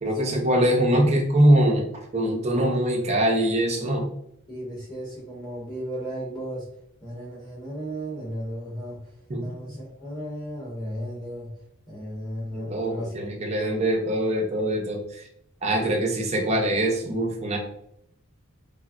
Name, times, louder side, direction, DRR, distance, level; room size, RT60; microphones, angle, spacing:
voice 1, 0.0-1.9 2.1-4.1 9.3-9.4 12.5-15.2 15.6-17.6, right 1 dB, 30° right, 0 dB, 0.6 m, -23 dB
voice 2, 4.5-6.7 7.0-9.0 9.4-11.5 11.9-13.1 15.8-15.9, equal, 15° left, -6 dB, 0.8 m, -35 dB
3.4 x 2.0 x 2.4 m, 0.74 s
head